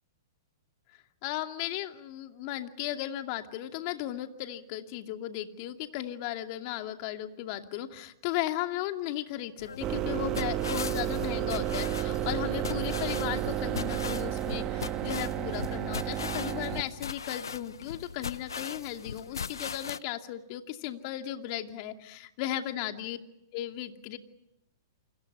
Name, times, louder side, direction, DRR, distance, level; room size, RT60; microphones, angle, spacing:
voice 1, 1.2-23.2 23.5-24.2, left 13 dB, 45° left, 6 dB, 2.5 m, -36 dB
sound 1, 9.6-20.0, left 6 dB, 85° left, 0.9 m, -40 dB
sound 2, 9.8-16.8, right 12 dB, 30° right, 2.0 m, -32 dB
29.5 x 25.0 x 5.6 m, 0.86 s
hypercardioid pair, 125°, 2 cm